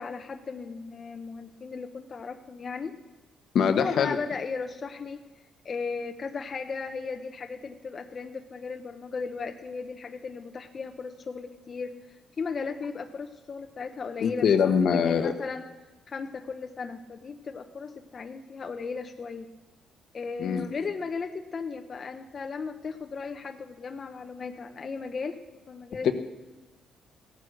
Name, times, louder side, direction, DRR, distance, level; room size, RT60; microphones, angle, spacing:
voice 1, 0.0-2.9 3.7-5.2 5.6-15.7 16.1-19.5 20.1-25.4 25.7-26.1, left 5 dB, 45° left, 6 dB, 0.9 m, -36 dB
voice 2, 3.5-4.2 14.2-15.3 20.4-20.7 26.0-26.1, left 7 dB, 70° left, 7 dB, 1.1 m, -23 dB
16.0 x 9.5 x 6.5 m, 1.1 s
cardioid pair, 90°, 0 cm